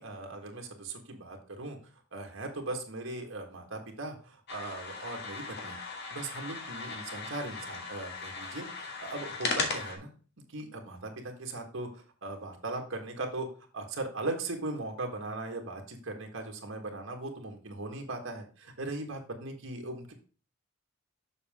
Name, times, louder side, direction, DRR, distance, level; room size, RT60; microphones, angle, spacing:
voice 1, 0.0-1.8 2.1-5.8 6.1-10.1 10.5-13.5 13.7-20.1, right 2 dB, 70° right, 2 dB, 1.7 m, -39 dB
sound 1, 4.5-10.0, left 4 dB, 55° left, 1.7 m, -37 dB
7.2 x 6.4 x 3.6 m, 0.38 s
head